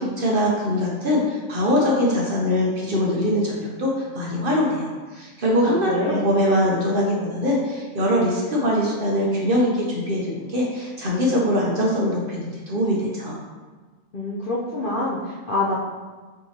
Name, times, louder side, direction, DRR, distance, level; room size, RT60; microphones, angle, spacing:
voice 1, 0.0-13.4, equal, 50° right, -3 dB, 0.8 m, -22 dB
voice 2, 5.6-6.2 14.1-15.8, left 2 dB, 50° left, -5 dB, 0.7 m, -26 dB
5.5 x 3.2 x 2.8 m, 1.4 s
omnidirectional pair, 1.4 m